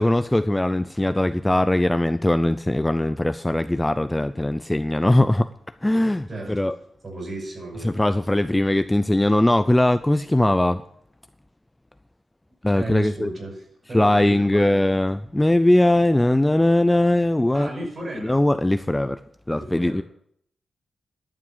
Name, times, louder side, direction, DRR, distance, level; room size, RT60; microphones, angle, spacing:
voice 1, 0.0-5.5 5.8-6.8 7.8-10.8 12.6-13.3 13.9-17.9 18.2-19.2 19.5-20.0, left 1 dB, 10° left, 11 dB, 0.4 m, -20 dB
voice 2, 6.3-6.7 7.0-8.0 12.7-14.8 17.5-18.4 19.5-20.0, right 2 dB, 35° right, 1 dB, 5.7 m, -35 dB
11.5 x 7.5 x 9.0 m, 0.68 s
wide cardioid pair, 140°, 0 cm